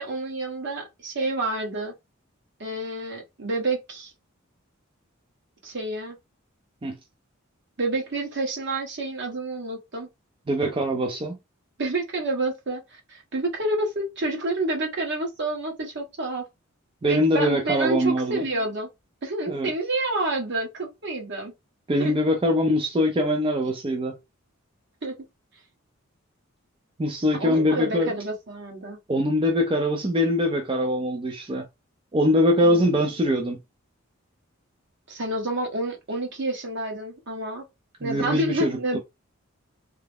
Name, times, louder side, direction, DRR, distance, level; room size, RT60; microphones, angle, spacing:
voice 1, 0.0-1.9 2.6-4.1 5.6-6.2 7.8-10.1 11.8-16.4 17.0-18.9 19.2-21.5 22.0-22.1 25.0-25.1 27.3-29.0 32.6-32.9 35.1-37.6 38.0-39.0, right 2 dB, 60° right, 1.1 m, -29 dB
voice 2, 10.5-11.4 17.0-18.5 19.5-19.7 21.9-24.2 27.0-28.1 29.1-31.7 32.1-33.6 38.0-39.0, equal, 25° right, 0.4 m, -23 dB
3.3 x 2.0 x 3.4 m
head